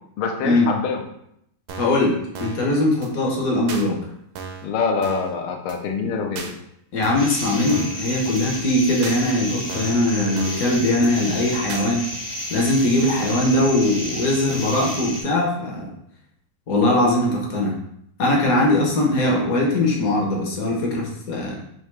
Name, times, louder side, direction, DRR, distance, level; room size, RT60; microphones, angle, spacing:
voice 1, 0.2-1.0 4.6-6.5, left 5 dB, 90° left, 4 dB, 1.5 m, -25 dB
sound 1, 1.7-2.0 2.3-2.7 3.0-3.1 3.7-3.8 4.4-4.7 5.0-5.3 5.7-5.8 6.4-6.5 7.0-7.4 7.7-8.0 8.4-8.5 9.0-9.2 9.7-10.0 10.4-10.7 11.0-11.1 11.7-11.9, right 5 dB, 75° right, 1.2 m, -35 dB
voice 2, 1.8-4.0 6.9-12.0 12.5-15.9 16.7-17.8 18.2-21.6, left 1 dB, 55° left, -2 dB, 1.0 m, -20 dB
sound 2, 7.1-15.2, left 1 dB, 40° left, 0.3 m, -32 dB
4.3 x 2.8 x 3.1 m, 0.74 s
omnidirectional pair, 2.3 m